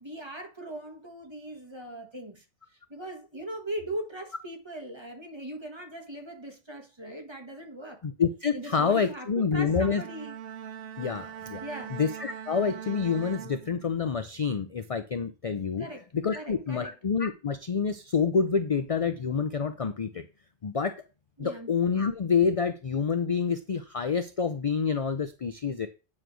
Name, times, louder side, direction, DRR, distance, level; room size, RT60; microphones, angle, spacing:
voice 1, 0.0-2.4 2.9-8.0 8.5-10.4 11.6-12.0 15.8-16.1 16.3-16.9 21.4-21.7, right 1 dB, 25° right, 1.4 m, -39 dB
voice 2, 8.0-10.0 11.0-11.6 11.9-15.9 16.1-20.2 20.6-20.9 21.4-25.9, left 6 dB, 45° left, 0.5 m, -27 dB
Bowed string instrument, 9.5-14.2, right 9 dB, 60° right, 0.7 m, -42 dB
9.1 x 3.2 x 6.2 m
omnidirectional pair, 1.2 m